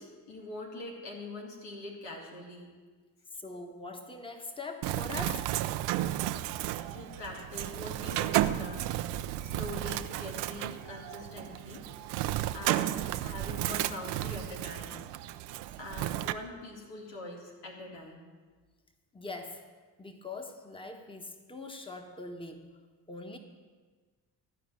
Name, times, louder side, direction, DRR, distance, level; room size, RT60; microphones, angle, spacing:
voice 1, 0.0-2.7 6.9-9.0 9.4-11.9 12.5-15.0 15.8-18.3, left 2 dB, 90° left, -1 dB, 2.3 m, -43 dB
voice 2, 3.3-5.5 19.1-19.6 20.0-22.7 23.1-23.4, left 3 dB, 10° left, 5 dB, 1.3 m, -42 dB
Bird, 4.8-16.3, right 14 dB, 90° right, 0.6 m, -33 dB
13.5 x 4.9 x 9.0 m, 1.4 s
supercardioid pair, 65°, 41 cm